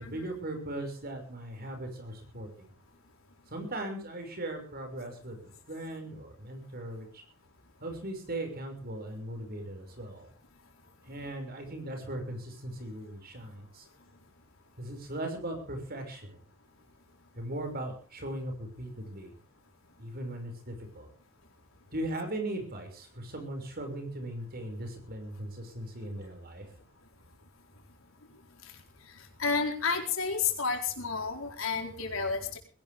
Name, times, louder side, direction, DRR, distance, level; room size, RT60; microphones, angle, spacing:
voice 1, 0.1-2.7 3.5-5.4 5.7-7.1 7.8-10.3 11.1-13.8 14.8-16.3 17.4-19.3 20.0-21.1 21.9-26.6, right 1 dB, 50° right, 5 dB, 6.1 m, -38 dB
voice 2, 29.4-32.6, left 5 dB, 85° left, 3 dB, 4.3 m, -30 dB
21.5 x 17.5 x 3.6 m, 0.38 s
head